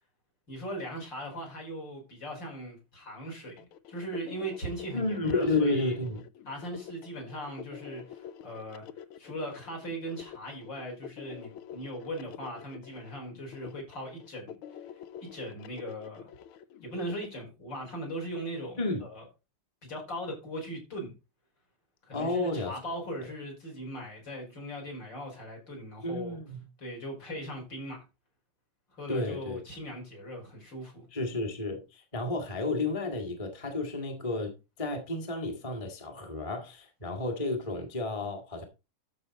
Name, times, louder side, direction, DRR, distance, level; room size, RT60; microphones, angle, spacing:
voice 1, 0.5-6.0 6.5-8.9 9.2-14.5 15.3-16.3 16.8-19.2 19.8-21.1 22.1-26.4 26.8-28.0 29.0-31.1, equal, 55° left, 5.9 m, -39 dB
sound 1, 3.6-17.3, left 9 dB, 80° left, 1.6 m, -47 dB
voice 2, 4.9-6.2 18.8-19.0 22.1-22.7 26.0-26.6 29.1-29.6 31.1-38.6, left 2 dB, 15° left, 1.6 m, -31 dB
13.0 x 5.5 x 4.0 m
omnidirectional pair, 2.4 m